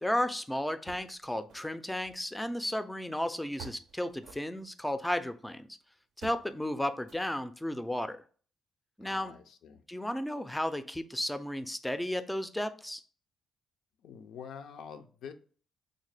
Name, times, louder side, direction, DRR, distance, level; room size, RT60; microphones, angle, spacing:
voice 1, 0.0-5.7 6.2-8.2 9.0-9.3 9.9-13.0, left 1 dB, 5° left, 0.3 m, -33 dB
sound 1, 0.9-1.8 2.0-3.1 3.6-5.2 6.2-6.5 7.0-7.6, right 5 dB, 85° right, 0.5 m, -51 dB
voice 2, 9.0-9.8 14.0-15.3, left 7 dB, 75° left, 0.4 m, -46 dB
3.7 x 2.1 x 3.2 m
cardioid pair, 90°, 0 cm